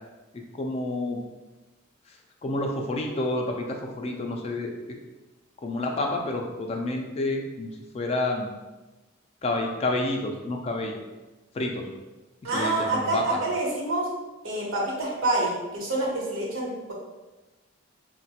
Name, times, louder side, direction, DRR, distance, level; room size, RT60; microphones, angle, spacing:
voice 1, 0.5-1.2 2.1-2.2 2.4-5.0 5.6-8.5 9.4-11.0 11.5-11.9 12.4-13.4, left 2 dB, 30° left, 2 dB, 0.3 m, -29 dB
voice 2, 12.4-14.1 14.4-16.9, right 2 dB, 85° right, -3 dB, 0.9 m, -27 dB
3.8 x 2.1 x 2.8 m, 1.1 s
head